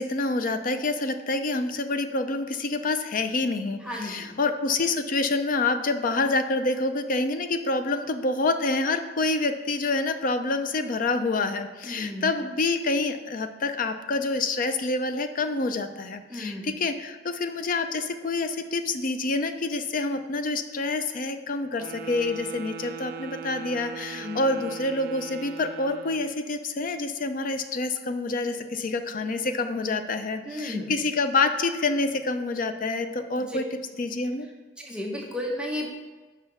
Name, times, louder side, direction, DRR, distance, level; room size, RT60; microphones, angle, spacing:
voice 1, 0.0-33.7 34.0-34.5, left 3 dB, 50° left, 9 dB, 0.5 m, -27 dB
voice 2, 3.8-4.4 11.8-12.3 16.3-16.7 24.1-24.4 30.5-30.9 33.3-33.6 34.8-35.9, left 1 dB, 5° right, -2 dB, 0.8 m, -33 dB
Wind instrument woodwind instrument, 21.7-26.3, right 7 dB, 60° right, 0.5 m, -40 dB
5.6 x 5.0 x 5.6 m, 1.3 s
head